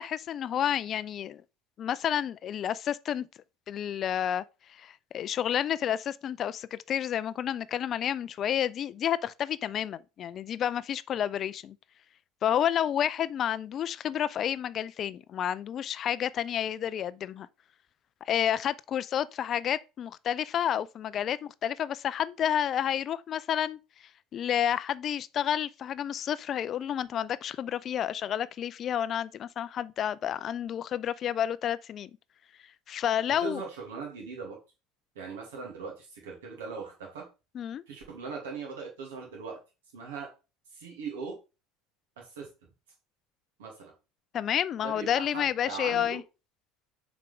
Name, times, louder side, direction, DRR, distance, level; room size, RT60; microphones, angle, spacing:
voice 1, 0.0-1.4 1.8-3.3 3.7-4.4 4.8-11.8 12.4-17.5 18.3-23.8 24.3-32.1 32.9-33.6 37.5-37.8 44.3-46.2, left 10 dB, 40° left, 0.4 m, -30 dB
voice 2, 33.4-34.6 35.1-37.3 37.9-39.6 39.9-40.3 40.7-41.4 42.2-42.5 43.6-43.9 44.8-46.2, right 5 dB, 70° right, 2.8 m, -39 dB
7.4 x 4.9 x 3.5 m
figure-of-eight pair, 65°, 0 cm